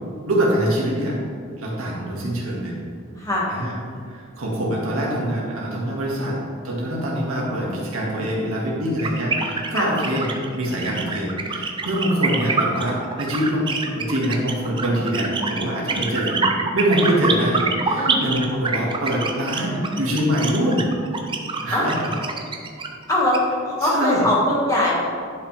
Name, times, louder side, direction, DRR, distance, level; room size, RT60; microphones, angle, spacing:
voice 1, 0.3-1.2 1.6-2.7 3.5-3.7 4.1-6.4 6.6-10.3 10.6-16.4 16.7-20.8 21.6-22.1 23.8-24.3, equal, 90° right, -4 dB, 2.0 m, -24 dB
voice 2, 3.2-3.5 9.7-9.9 17.9-18.2 21.7-21.9 23.1-23.4 23.6-25.0, left 1 dB, 15° left, -5 dB, 1.8 m, -21 dB
sound 1, 9.0-23.4, right 4 dB, 25° right, 0.6 m, -25 dB
10.5 x 5.9 x 3.4 m, 2.3 s
head